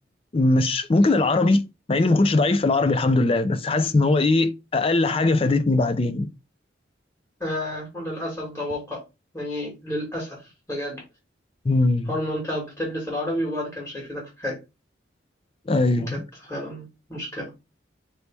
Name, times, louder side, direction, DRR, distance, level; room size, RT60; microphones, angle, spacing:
voice 1, 0.3-6.3 11.7-12.1 15.7-16.3, left 2 dB, 30° left, 0.4 m, -20 dB
voice 2, 7.4-9.0 9.3-10.4 10.7-11.0 12.1-14.6 16.1-16.2 16.5-17.5, left 1 dB, 15° left, 1.6 m, -30 dB
4.0 x 3.1 x 3.4 m
head